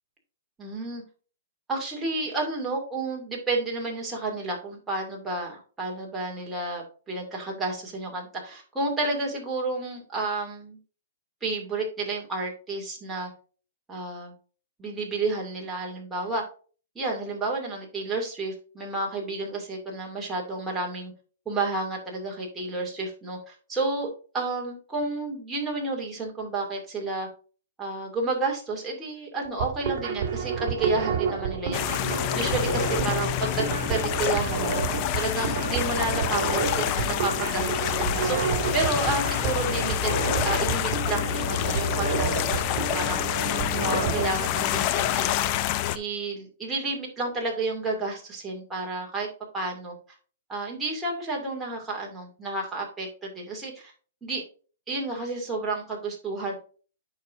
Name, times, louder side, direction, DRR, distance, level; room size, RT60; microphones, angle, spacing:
voice 1, 0.6-1.0 1.7-10.8 11.4-13.3 13.9-14.3 14.8-16.4 16.9-21.1 21.5-24.1 24.3-27.3 27.8-32.0 32.3-40.2 40.4-43.2 43.8-45.3 45.9-49.3 49.5-49.9 50.5-53.9 54.2-54.4 54.9-56.5, right 3 dB, 10° right, -2 dB, 2.4 m, -31 dB
sound 1, 29.5-44.2, right 6 dB, 40° right, 2.3 m, -30 dB
sound 2, 31.7-46.0, left 12 dB, 35° left, 0.5 m, -27 dB
9.3 x 5.7 x 2.6 m, 0.38 s
hypercardioid pair, 155°, 0 cm